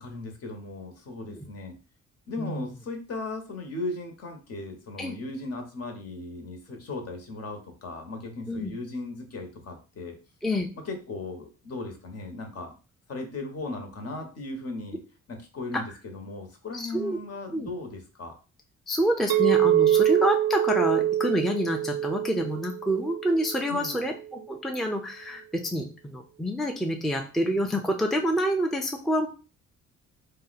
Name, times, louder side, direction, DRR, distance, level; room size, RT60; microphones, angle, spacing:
voice 1, 0.0-1.8 2.3-10.2 10.8-12.7 13.1-15.0 15.3-18.4 23.7-24.0, left 2 dB, 55° left, 4 dB, 1.0 m, -37 dB
voice 2, 2.4-2.7 5.0-5.2 8.5-8.7 10.4-10.7 15.7-15.8 16.7-17.2 17.5-17.7 18.9-29.3, equal, ahead, 3 dB, 0.4 m, -27 dB
Chink clink, 19.3-23.6, right 11 dB, 85° right, 0.5 m, -24 dB
2.6 x 2.1 x 4.0 m, 0.34 s
cardioid pair, 90°, 30 cm